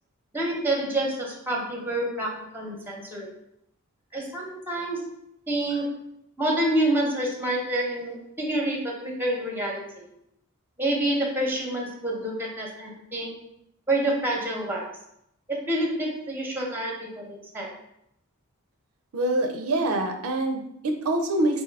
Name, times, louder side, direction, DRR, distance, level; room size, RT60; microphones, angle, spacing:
voice 1, 0.3-3.3 4.1-5.0 5.5-5.9 6.4-10.1 10.8-13.3 13.9-14.8 15.7-17.7, right 1 dB, 10° right, -1 dB, 0.8 m, -28 dB
voice 2, 19.1-21.6, right 1 dB, 70° right, 4 dB, 0.5 m, -25 dB
3.5 x 2.6 x 4.6 m, 0.77 s
head